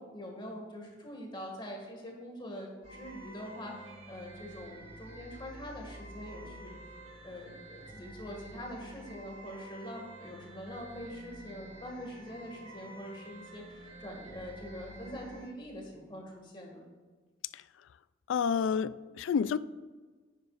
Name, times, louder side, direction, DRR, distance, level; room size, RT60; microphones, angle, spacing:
voice 1, 0.0-6.8 7.2-16.8, equal, 25° left, 1.9 m, -44 dB
sound 1, 2.8-15.5, right 1 dB, 30° right, 1.7 m, -49 dB
voice 2, 18.3-19.6, left 6 dB, 75° left, 0.3 m, -29 dB
10.5 x 9.2 x 2.5 m
head